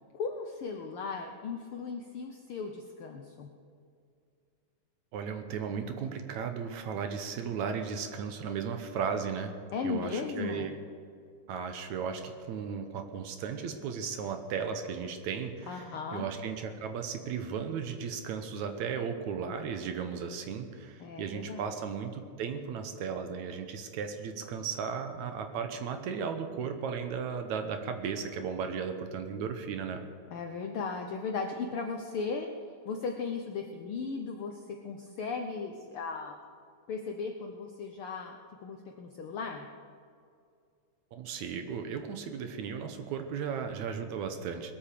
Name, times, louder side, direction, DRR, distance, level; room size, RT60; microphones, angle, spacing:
voice 1, 0.1-3.5 9.7-10.7 15.7-16.3 21.0-21.7 30.3-32.5 32.8-36.4 36.9-39.7, left 4 dB, 80° left, 3 dB, 1.2 m, -36 dB
voice 2, 5.1-9.5 9.8-10.7 11.5-30.0 41.1-44.7, right 6 dB, 70° right, 6 dB, 2.2 m, -35 dB
20.5 x 8.8 x 6.7 m, 2.3 s
omnidirectional pair, 3.7 m